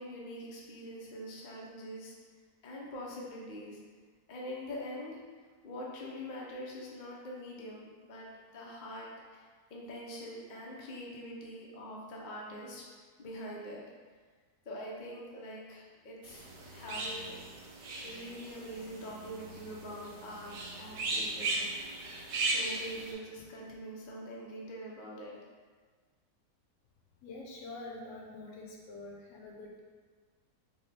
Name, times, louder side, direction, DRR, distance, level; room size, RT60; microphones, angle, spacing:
voice 1, 0.0-2.1 2.6-3.8 4.3-5.2 5.6-8.3 8.5-12.8 13.2-13.8 14.7-17.4 18.0-22.2 22.4-25.4, equal, 90° left, -4 dB, 0.4 m, -44 dB
sound 1, 16.2-23.1, right 2 dB, 80° right, 1.2 m, -37 dB
voice 2, 27.2-29.8, left 2 dB, 65° left, -2 dB, 0.8 m, -46 dB
3.8 x 2.1 x 3.9 m, 1.5 s
omnidirectional pair, 1.7 m